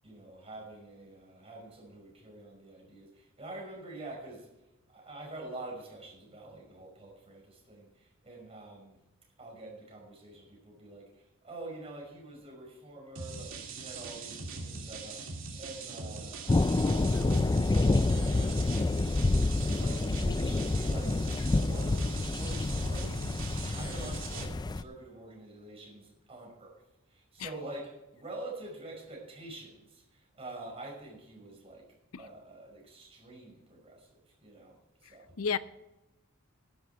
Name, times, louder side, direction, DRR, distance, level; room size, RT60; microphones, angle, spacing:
voice 1, 0.0-4.5 4.9-9.0 9.4-23.2 23.5-31.8 32.2-35.4, right 2 dB, 30° right, 5.6 m, -47 dB
sound 1, 13.2-24.4, right 4 dB, 65° right, 2.7 m, -42 dB
sound 2, 16.5-24.8, left 2 dB, 20° left, 0.3 m, -28 dB
voice 2, 35.0-35.6, left 6 dB, 75° left, 0.6 m, -33 dB
12.5 x 11.0 x 4.6 m
head